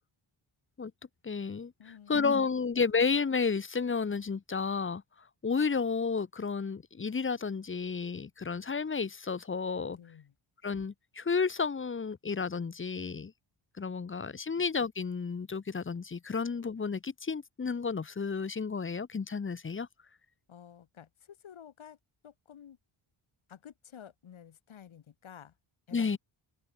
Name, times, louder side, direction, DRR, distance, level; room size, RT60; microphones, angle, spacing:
voice 1, 1.2-1.7 2.1-5.0 5.4-10.0 10.6-13.3 13.8-19.9 25.9-26.2, left 5 dB, 25° left, 0.9 m, -31 dB
voice 2, 1.8-2.4 9.9-10.3 16.2-16.4 20.5-22.0 22.2-22.8 23.5-25.5 25.9-26.2, left 9 dB, 70° left, 4.3 m, -52 dB
open air
cardioid pair, 100°, 49 cm